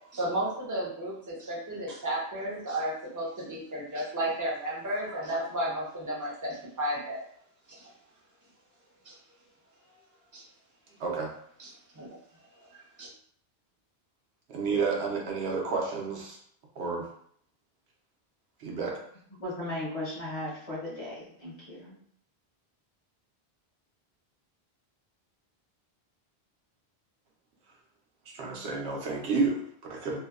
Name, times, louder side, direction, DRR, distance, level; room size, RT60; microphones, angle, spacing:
voice 1, 0.1-7.2 7.8-7.9 9.0-9.1 10.3-10.4 11.6-11.7 11.9-12.1 12.7-13.1, right 1 dB, 25° right, -4 dB, 0.5 m, -33 dB
voice 2, 11.0-11.3 14.5-16.4 16.8-17.1 18.6-19.0 28.3-30.2, right 4 dB, 75° right, -1 dB, 0.9 m, -30 dB
voice 3, 19.4-22.0, left 1 dB, 40° left, -6 dB, 0.7 m, -36 dB
2.6 x 2.1 x 2.3 m, 0.64 s
omnidirectional pair, 1.1 m